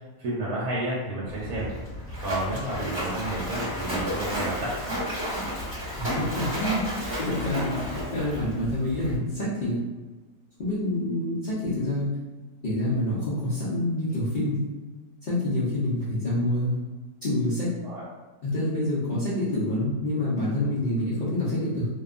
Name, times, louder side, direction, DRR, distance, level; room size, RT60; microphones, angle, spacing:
voice 1, 0.2-1.7 2.2-4.7 17.8-18.1, right 1 dB, 70° right, -6 dB, 1.0 m, -31 dB
Splash splatter, 1.3-9.2, equal, 25° right, 0.7 m, -32 dB
voice 2, 6.0-6.8 7.2-9.8 10.6-12.1 12.6-14.7 15.2-16.8 17.2-17.7 18.4-21.9, left 1 dB, 80° left, -11 dB, 0.4 m, -27 dB
2.7 x 2.2 x 2.4 m, 1.3 s
omnidirectional pair, 1.7 m